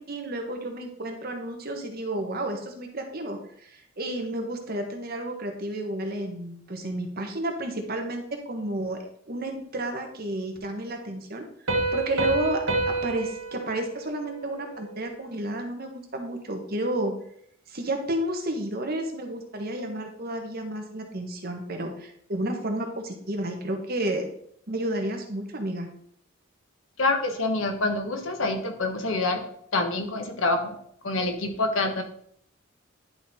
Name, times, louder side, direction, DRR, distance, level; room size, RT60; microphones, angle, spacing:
voice 1, 0.1-9.0 9.3-11.5 11.9-17.1 17.7-24.3 24.7-25.9, right 1 dB, 50° right, 3 dB, 1.3 m, -31 dB
Piano, 11.7-15.1, right 2 dB, 80° right, 1.3 m, -29 dB
voice 2, 27.0-29.4 29.7-30.8 31.0-32.0, left 2 dB, 75° left, 5 dB, 1.2 m, -26 dB
10.5 x 3.9 x 4.2 m, 0.67 s
head